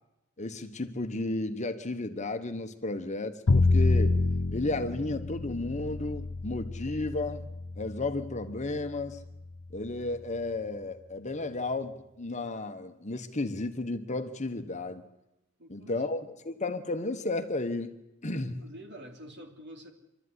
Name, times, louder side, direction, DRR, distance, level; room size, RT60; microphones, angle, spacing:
voice 1, 0.4-4.2 4.5-7.5 7.8-9.2 9.7-15.0 15.7-18.0 18.2-18.6, left 2 dB, 35° left, 1.2 m, -33 dB
Bowed string instrument, 3.5-9.6, left 3 dB, 75° left, 0.8 m, -28 dB
voice 2, 15.6-16.3 18.6-19.9, equal, 55° right, 3.1 m, -47 dB
26.0 x 12.5 x 9.7 m
head